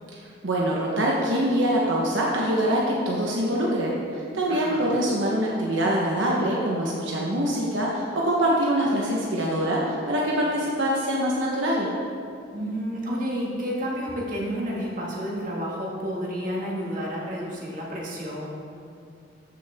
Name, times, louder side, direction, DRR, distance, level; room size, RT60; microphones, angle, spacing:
voice 1, 0.1-11.9, right 1 dB, 75° right, -3 dB, 1.1 m, -24 dB
voice 2, 4.5-4.9 12.5-18.5, equal, 45° right, -4 dB, 2.0 m, -30 dB
14.0 x 6.3 x 3.6 m, 2.4 s
head